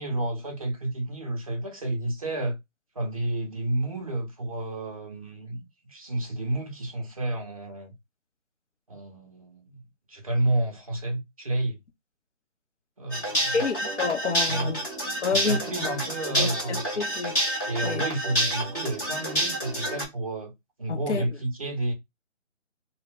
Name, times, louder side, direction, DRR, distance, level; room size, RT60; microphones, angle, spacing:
voice 1, 0.0-2.6 3.0-5.6 5.9-7.9 8.9-9.8 10.1-11.8 13.0-13.6 14.5-14.7 15.3-16.8 17.7-20.5 20.8-21.9, right 1 dB, 30° right, 0.6 m, -30 dB
sound 1, 13.1-20.1, right 1 dB, 15° left, 0.8 m, -28 dB
voice 2, 13.5-14.9 15.2-15.9 16.4-17.4 17.8-18.0 20.9-21.3, left 5 dB, 65° left, 0.7 m, -29 dB
2.2 x 2.1 x 3.4 m
figure-of-eight pair, 150°, 38 cm